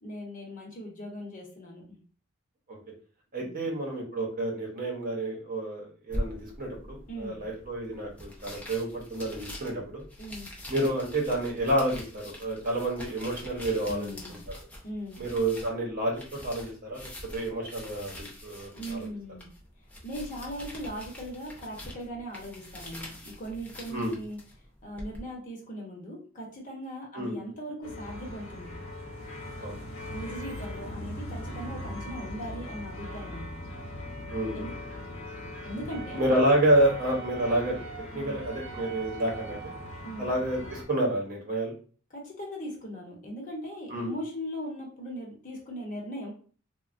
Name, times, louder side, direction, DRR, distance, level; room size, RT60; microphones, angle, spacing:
voice 1, 0.0-2.0 3.4-3.7 7.1-7.4 10.2-10.5 13.8-14.4 14.8-15.2 18.7-19.5 20.0-24.4 24.8-28.7 30.1-33.6 34.5-34.7 35.6-36.2 38.1-38.4 40.0-40.3 42.1-46.3, equal, 40° left, -1 dB, 0.9 m, -39 dB
voice 2, 3.3-10.0 10.7-14.4 15.2-18.1 18.4-19.1 23.9-24.1 27.1-27.5 29.6-29.8 34.3-34.7 36.1-37.8 38.1-39.7 40.2-41.7 43.9-44.1, right 1 dB, 45° right, -1 dB, 0.9 m, -29 dB
sound 1, 6.1-25.2, left 1 dB, 5° left, 0.6 m, -43 dB
sound 2, 27.8-40.8, left 1 dB, 80° left, 0.9 m, -40 dB
Wind instrument woodwind instrument, 35.9-40.1, right 9 dB, 65° right, 0.4 m, -44 dB
3.2 x 2.2 x 2.5 m, 0.41 s
head